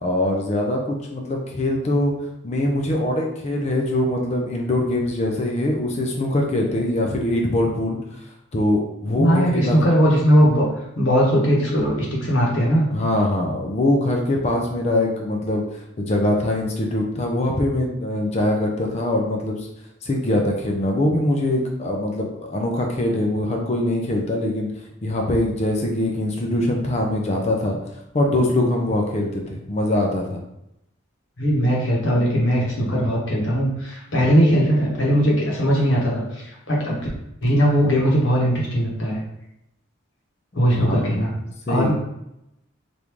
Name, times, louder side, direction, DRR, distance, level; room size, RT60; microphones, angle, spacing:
voice 1, 0.0-2.1 2.4-8.2 8.5-10.0 12.9-19.7 20.0-24.7 25.0-27.8 28.1-30.4 40.6-41.3 41.7-41.9, left 1 dB, 30° left, 1 dB, 0.4 m, -23 dB
voice 2, 9.2-10.7 11.0-12.9 31.4-37.0 37.4-39.2 40.5-41.3 41.7-41.9, equal, 60° left, -3 dB, 1.0 m, -19 dB
3.5 x 2.5 x 3.0 m, 0.84 s
head